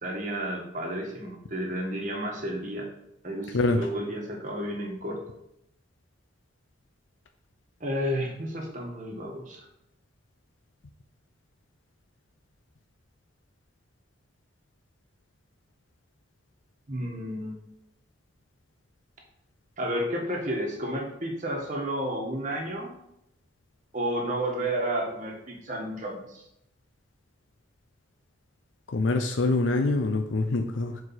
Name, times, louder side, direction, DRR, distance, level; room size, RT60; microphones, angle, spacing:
voice 1, 0.0-2.9 3.2-5.2 7.8-9.6 16.9-17.6 19.8-22.9 23.9-26.4, right 1 dB, 40° right, 0 dB, 1.5 m, -31 dB
voice 2, 3.5-3.9 28.9-31.0, left 2 dB, 80° left, 5 dB, 0.5 m, -25 dB
6.6 x 4.5 x 4.2 m, 0.78 s
head